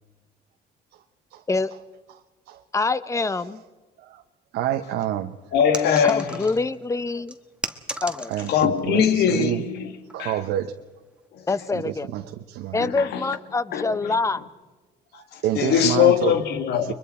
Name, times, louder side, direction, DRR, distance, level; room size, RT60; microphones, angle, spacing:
voice 1, 2.7-3.6 6.0-7.3 8.0-8.3 11.5-12.1 12.7-14.4, left 3 dB, 20° left, 14 dB, 0.9 m, -25 dB
voice 2, 4.5-5.3 8.3-9.6 10.1-10.7 11.8-12.8 15.1-16.3, right 12 dB, 80° right, 6 dB, 1.0 m, -28 dB
voice 3, 5.5-6.5 8.5-9.9 10.2-10.4 11.3-11.6 12.8-13.4 13.7-14.2 15.1-16.9, left 8 dB, 75° left, 7 dB, 2.0 m, -22 dB
sound 1, 5.7-6.8 7.3-8.8 9.1-9.5 10.1-10.3, right 1 dB, 5° right, 1.2 m, -35 dB
30.0 x 23.0 x 4.4 m, 1.2 s
cardioid pair, 110°, 17 cm